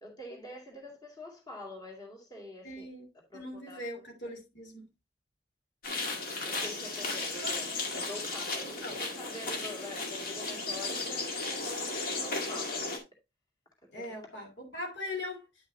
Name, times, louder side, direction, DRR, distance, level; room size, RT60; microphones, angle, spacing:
voice 1, 0.0-2.9 3.3-3.9 6.4-13.0 14.0-14.2, left 1 dB, 25° left, 2.3 m, -46 dB
voice 2, 2.6-3.0 3.3-4.8 7.4-7.6 8.8-9.0 13.9-15.5, left 1 dB, 85° left, 2.7 m, -40 dB
sound 1, 5.8-13.0, left 3 dB, 55° left, 2.1 m, -35 dB
9.8 x 5.9 x 2.7 m
head